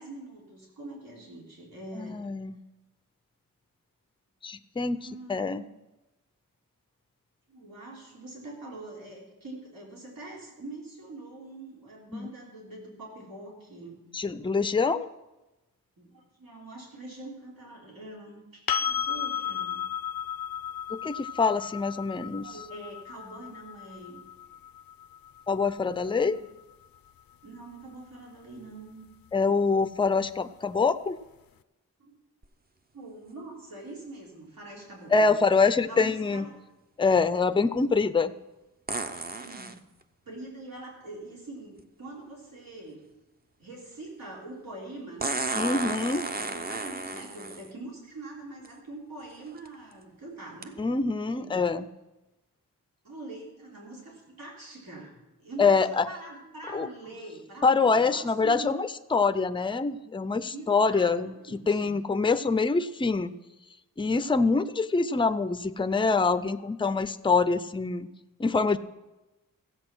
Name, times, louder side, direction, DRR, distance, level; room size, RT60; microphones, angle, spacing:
voice 1, 0.0-2.2 4.9-5.7 7.5-14.0 16.0-19.8 22.3-24.2 26.1-26.5 27.4-29.1 32.0-32.1 32.9-35.3 35.9-36.5 39.3-39.8 40.3-43.0 43.6-45.4 46.4-50.8 51.2-51.6 53.0-58.8 60.5-62.0, right 2 dB, 85° right, -3 dB, 3.5 m, -44 dB
voice 2, 1.9-2.6 4.4-5.0 5.3-5.7 12.1-12.3 14.1-15.1 20.9-22.5 25.5-26.4 29.3-31.2 35.1-36.5 37.0-38.3 45.5-46.3 50.8-51.9 55.6-56.1 56.7-56.9 57.6-61.3 61.7-63.3 64.0-68.1 68.4-68.8, left 4 dB, 15° left, 11 dB, 0.5 m, -25 dB
sound 1, 18.7-26.5 29.3-29.4, left 9 dB, 90° left, 0.6 m, -34 dB
sound 2, 32.4-32.5 38.9-39.8 41.8-41.9 45.2-47.7 48.6-48.7 49.4-49.7 50.6-50.7, right 3 dB, 25° right, 0.7 m, -33 dB
15.5 x 8.1 x 6.1 m, 1.0 s
wide cardioid pair, 135°, 34 cm